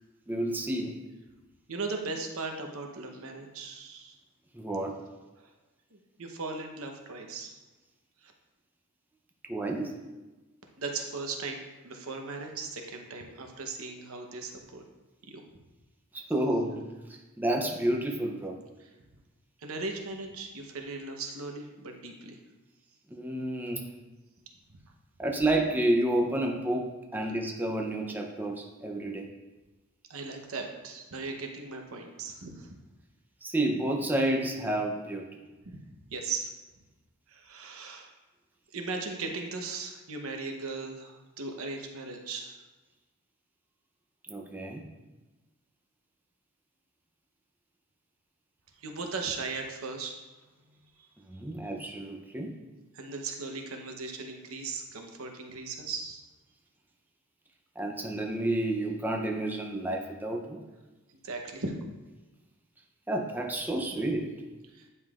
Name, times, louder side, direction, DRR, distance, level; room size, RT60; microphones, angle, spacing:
voice 1, 0.3-1.0 4.5-5.0 9.5-9.9 16.1-16.9 17.4-18.6 23.1-23.8 25.2-29.3 33.4-35.2 44.3-44.8 51.3-52.5 57.8-60.6 63.1-64.3, right 1 dB, 10° right, 1 dB, 0.6 m, -30 dB
voice 2, 1.7-4.2 5.4-5.5 5.9-7.5 8.2-8.3 10.8-14.8 15.2-15.4 18.8-18.9 19.6-22.4 30.1-32.8 35.6-35.8 36.1-36.5 37.3-38.1 38.7-42.6 48.8-50.1 50.6-51.1 52.9-56.2 61.2-61.8 64.7-64.9, right 3 dB, 70° right, 3 dB, 0.9 m, -38 dB
9.5 x 5.4 x 2.4 m, 1.1 s
head